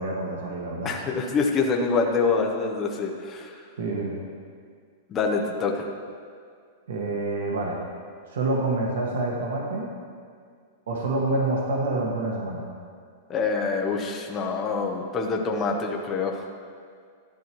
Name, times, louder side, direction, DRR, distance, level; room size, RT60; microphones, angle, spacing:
voice 1, 0.0-1.0 3.8-4.2 6.9-7.8 8.3-9.9 10.9-12.7, right 2 dB, 90° right, -2 dB, 1.4 m, -27 dB
voice 2, 0.8-3.5 5.1-5.9 13.3-16.4, left 4 dB, 15° left, 0 dB, 0.7 m, -26 dB
13.0 x 9.8 x 3.1 m, 2.1 s
supercardioid pair, 175°, 0 cm